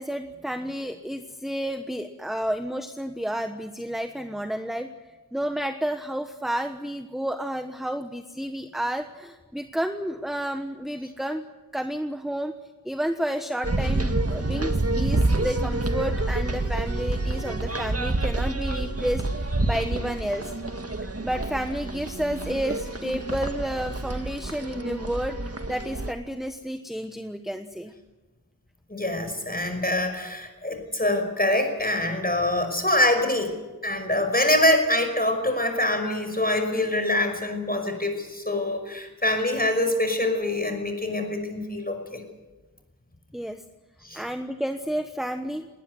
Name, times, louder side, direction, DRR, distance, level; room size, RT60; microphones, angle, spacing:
voice 1, 0.0-4.9 5.3-11.4 11.7-12.5 12.8-20.5 21.2-25.4 25.7-27.9 43.3-43.6 44.1-45.7, equal, ahead, 7 dB, 1.1 m, -31 dB
sound 1, 13.6-26.1, right 2 dB, 45° right, 1.8 m, -28 dB
voice 2, 28.9-33.5 33.8-42.2 44.0-44.2, left 1 dB, 25° left, 6 dB, 5.5 m, -25 dB
20.0 x 19.5 x 9.8 m, 1.2 s
wide cardioid pair, 45°, 35 cm